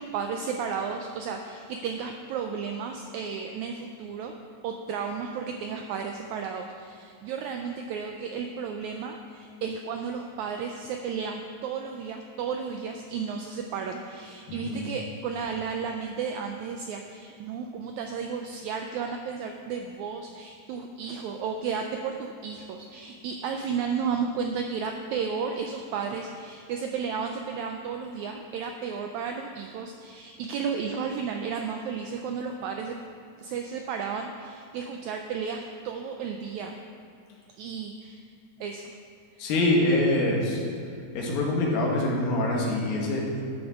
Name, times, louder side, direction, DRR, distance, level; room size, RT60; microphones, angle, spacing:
voice 1, 0.0-4.3 4.6-33.0 33.4-36.7 37.6-38.3 38.6-39.0, right 6 dB, 90° right, 4 dB, 1.6 m, -33 dB
voice 2, 39.4-40.6 41.1-43.4, left 1 dB, 90° left, -2 dB, 3.3 m, -25 dB
12.5 x 8.7 x 3.6 m, 2.4 s
omnidirectional pair, 3.9 m